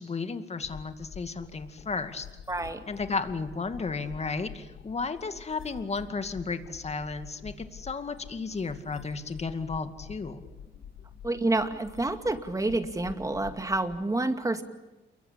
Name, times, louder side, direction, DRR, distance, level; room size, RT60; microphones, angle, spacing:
voice 1, 0.0-2.3 2.9-10.4, left 4 dB, 35° left, 9 dB, 2.3 m, -33 dB
sound 1, 0.6-14.0, left 7 dB, 80° left, 3.9 m, -47 dB
voice 2, 2.5-2.8 11.2-14.6, right 2 dB, 15° right, 7 dB, 2.4 m, -28 dB
28.5 x 23.0 x 8.7 m, 1.0 s
cardioid pair, 90°, 20 cm